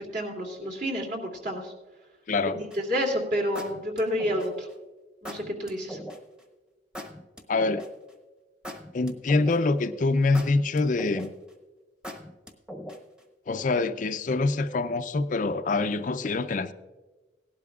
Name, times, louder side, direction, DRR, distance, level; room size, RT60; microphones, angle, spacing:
voice 1, 0.0-1.7 2.8-4.7 5.2-6.0, equal, 50° right, 0 dB, 2.5 m, -29 dB
sound 1, 2.7-3.0 3.6-4.7 5.2-6.2 6.9-8.1 8.6-9.8 10.3-11.5 12.0-13.2, equal, 5° right, 1.1 m, -40 dB
voice 2, 7.5-7.9 8.9-11.3 13.5-16.7, left 3 dB, 45° left, 10 dB, 0.5 m, -25 dB
18.0 x 12.0 x 2.4 m, 1.2 s
head